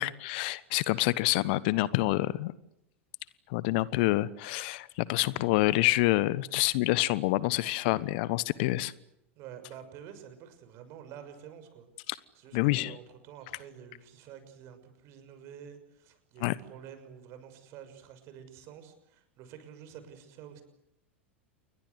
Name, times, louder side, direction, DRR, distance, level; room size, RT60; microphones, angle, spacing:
voice 1, 0.0-2.5 3.5-8.9 12.1-12.2 12.5-13.0 16.4-16.5, left 19 dB, 50° left, 19 dB, 1.1 m, -27 dB
voice 2, 9.4-11.9 12.3-20.6, right 9 dB, 45° right, 9 dB, 6.4 m, -49 dB
29.0 x 22.5 x 8.1 m, 0.80 s
figure-of-eight pair, 90°, 7 cm